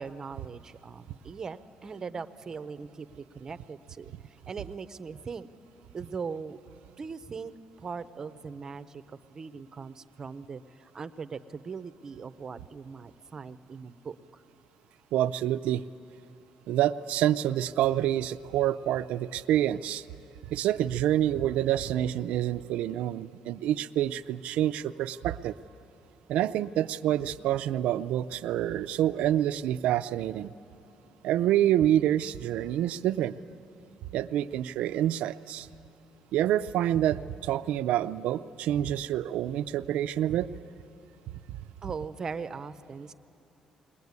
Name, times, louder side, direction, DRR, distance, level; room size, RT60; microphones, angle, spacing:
voice 1, 0.0-5.5 5.9-6.6 7.0-7.5 7.8-14.4 41.8-43.1, right 5 dB, 25° right, 11 dB, 0.6 m, -40 dB
voice 2, 15.1-15.8 16.7-20.0 20.5-25.6 26.3-30.5 31.2-33.4 34.1-35.7 36.3-40.5, right 12 dB, 90° right, 12 dB, 0.5 m, -27 dB
21.5 x 19.0 x 9.6 m, 2.9 s
cardioid pair, 170°, 2 cm